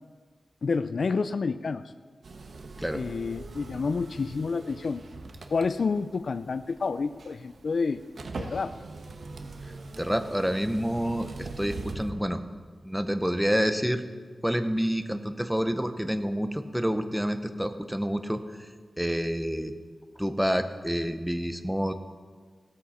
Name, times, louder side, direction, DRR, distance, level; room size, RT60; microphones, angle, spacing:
voice 1, 0.6-1.8 2.9-5.0 5.5-8.0 8.4-8.8, left 4 dB, 60° left, 12 dB, 0.4 m, -29 dB
sound 1, 2.2-12.1, right 3 dB, 65° right, 1.3 m, -42 dB
voice 2, 10.0-12.4 12.8-14.0 14.4-19.7 20.2-21.9, equal, 5° right, 8 dB, 0.8 m, -28 dB
16.5 x 13.5 x 4.3 m, 1.5 s
wide cardioid pair, 120°, 0 cm